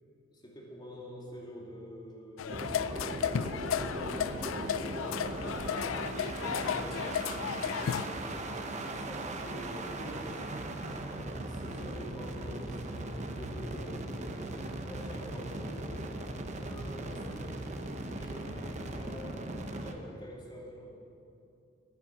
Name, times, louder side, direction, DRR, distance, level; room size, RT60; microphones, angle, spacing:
voice 1, 0.3-10.5 11.0-14.3 14.8-16.1 16.6-17.8 18.1-20.9, equal, 20° left, -3 dB, 2.4 m, -47 dB
sound 1, 2.4-8.1, left 8 dB, 80° left, 0.4 m, -34 dB
sound 2, 2.5-19.9, right 2 dB, 35° right, 0.9 m, -38 dB
11.0 x 9.8 x 7.2 m, 2.7 s
head